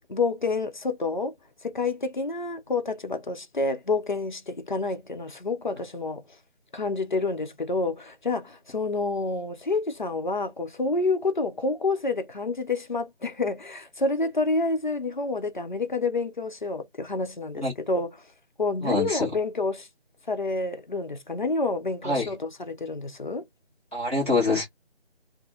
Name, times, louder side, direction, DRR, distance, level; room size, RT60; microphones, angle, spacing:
voice 1, 0.1-1.3 1.6-6.2 6.7-18.1 18.6-19.9 20.3-23.5, left 3 dB, 45° left, 0.5 m, -28 dB
voice 2, 18.8-19.3 22.0-22.3 23.9-24.7, left 2 dB, 10° right, 0.8 m, -25 dB
2.4 x 2.4 x 2.6 m
figure-of-eight pair, 160°, 34 cm